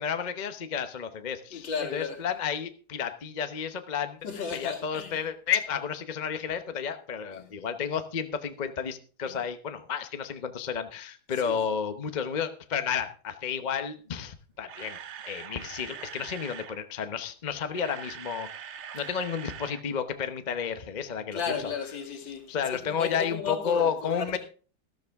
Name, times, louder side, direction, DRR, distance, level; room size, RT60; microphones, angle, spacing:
voice 1, 0.0-15.0 15.3-18.5 18.9-21.7 22.5-24.4, left 7 dB, 45° left, 0.5 m, -32 dB
voice 2, 1.5-2.2 4.2-5.2 7.3-7.5 9.3-9.4 11.4-11.6 21.3-24.4, left 5 dB, 65° left, 3.0 m, -34 dB
Camera, 14.4-16.8 17.5-19.8 20.1-20.2 20.7-20.8, right 8 dB, 70° right, 0.6 m, -43 dB
13.5 x 13.0 x 3.5 m
omnidirectional pair, 2.2 m